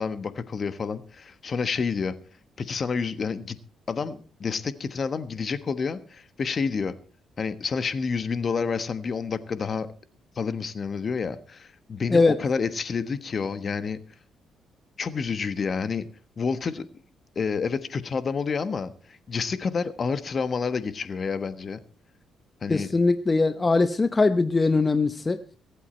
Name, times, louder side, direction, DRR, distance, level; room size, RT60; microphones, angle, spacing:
voice 1, 0.0-2.1 2.6-3.6 3.9-6.9 7.4-9.9 10.4-14.0 15.0-16.1 16.4-16.9 17.3-21.8 22.6-22.9, left 5 dB, 45° left, 13 dB, 1.3 m, -29 dB
voice 2, 22.7-25.4, left 3 dB, 25° left, 11 dB, 0.9 m, -21 dB
23.5 x 8.4 x 4.4 m, 0.38 s
cardioid pair, 90°, 0 cm